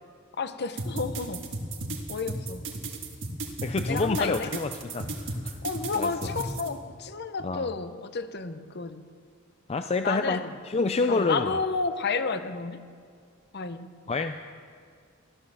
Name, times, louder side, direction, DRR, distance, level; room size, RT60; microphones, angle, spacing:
voice 1, 0.4-1.5 2.1-2.7 3.9-4.5 5.6-9.0 10.0-10.5 11.1-12.9 13.5-13.9, left 4 dB, 55° left, 10 dB, 0.9 m, -31 dB
sound 1, 0.8-6.7, right 2 dB, 65° right, 1.9 m, -34 dB
voice 2, 3.6-5.6 5.9-6.3 7.4-7.7 9.7-11.6 14.1-14.4, left 3 dB, 30° left, 8 dB, 0.4 m, -28 dB
15.0 x 11.5 x 6.9 m, 2.3 s
head